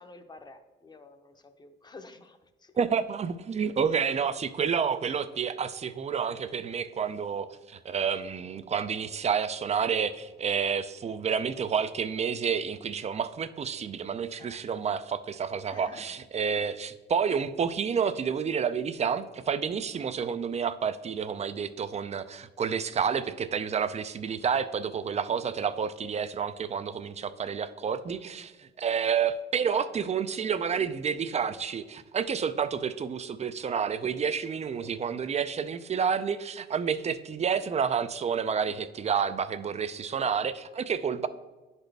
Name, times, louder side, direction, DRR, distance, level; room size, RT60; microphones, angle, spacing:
voice 1, 0.0-2.7 4.0-4.1 14.4-14.6 15.7-16.0 29.8-30.1 34.7-34.9, left 3 dB, 20° left, 7 dB, 0.7 m, -50 dB
voice 2, 2.8-41.3, right 6 dB, 35° right, 12 dB, 0.4 m, -29 dB
10.5 x 4.1 x 3.4 m, 1.2 s
cardioid pair, 90°, 20 cm